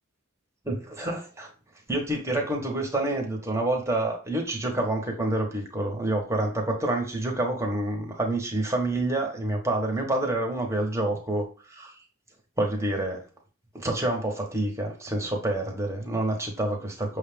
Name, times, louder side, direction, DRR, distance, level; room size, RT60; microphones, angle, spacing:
voice 1, 0.6-1.5 1.9-11.9 12.6-13.3 13.7-17.2, right 1 dB, 15° right, 1 dB, 1.0 m, -28 dB
6.2 x 2.4 x 3.3 m, 0.37 s
head